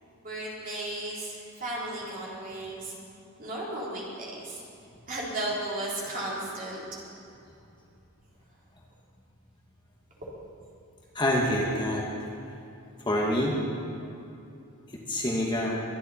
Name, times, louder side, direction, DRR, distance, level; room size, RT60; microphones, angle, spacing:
voice 1, 0.2-2.9 3.4-4.6 5.1-6.8 10.2-10.3, right 1 dB, 35° right, -6 dB, 3.6 m, -35 dB
voice 2, 11.1-12.1 13.0-13.6 14.9-15.8, left 1 dB, 20° left, -2 dB, 1.4 m, -26 dB
23.0 x 10.5 x 4.2 m, 2.6 s
head